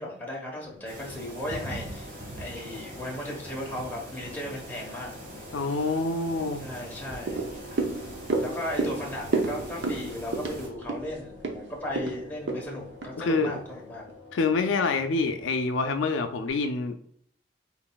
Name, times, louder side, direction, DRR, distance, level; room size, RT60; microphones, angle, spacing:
voice 1, 0.0-5.1 6.6-7.5 7.8-7.9 8.3-14.0, left 1 dB, 10° left, -3 dB, 1.1 m, -36 dB
sound 1, 0.5-16.5, left 3 dB, 35° left, 1.6 m, -50 dB
sound 2, 0.9-10.7, right 1 dB, 45° right, 1.5 m, -42 dB
voice 2, 5.5-6.6 13.2-13.5 14.3-17.0, left 3 dB, 85° left, 7 dB, 0.4 m, -26 dB
sound 3, 7.3-13.7 14.1-14.2, right 3 dB, 70° right, 0.7 m, -32 dB
4.1 x 3.9 x 2.3 m, 0.63 s
head